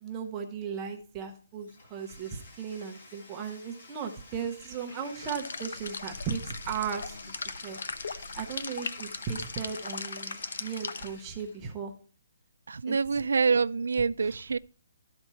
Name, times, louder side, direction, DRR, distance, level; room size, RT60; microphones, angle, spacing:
voice 1, 0.0-7.2 7.6-7.8 8.3-11.9 12.9-13.0 14.2-14.3, right 6 dB, 15° right, 0.8 m, -36 dB
Bathtub (filling or washing), 1.6-11.6, left 2 dB, 45° left, 2.7 m, -49 dB
sound 1, 5.2-11.1, left 4 dB, 65° left, 0.9 m, -38 dB
voice 2, 12.7-14.6, right 5 dB, 85° right, 0.4 m, -26 dB
13.0 x 4.4 x 6.8 m
hypercardioid pair, 180°, 0 cm